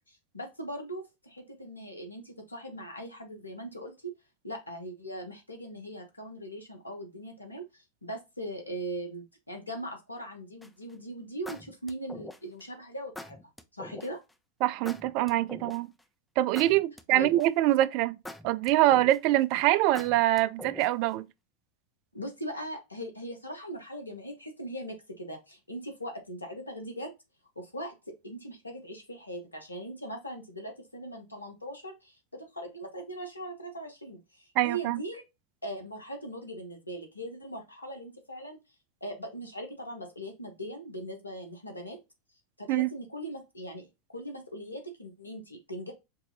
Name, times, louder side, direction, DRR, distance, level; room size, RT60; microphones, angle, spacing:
voice 1, 0.1-4.1 4.4-13.4 13.7-14.2 17.1-17.3 22.1-27.1 27.6-35.2 35.6-38.6 39.0-42.0 42.6-45.9, right 1 dB, 90° left, 1.1 m, -40 dB
sound 1, 10.6-10.9 11.5-12.6 13.1-14.1 14.8-16.0 16.5-17.7 18.2-19.4 19.9-21.1, left 2 dB, 5° left, 0.5 m, -43 dB
voice 2, 14.6-15.9 16.4-18.2 18.4-21.3 34.6-35.0 42.7-42.9, right 15 dB, 50° right, 0.3 m, -24 dB
5.3 x 2.7 x 2.9 m
figure-of-eight pair, 85°, 0 cm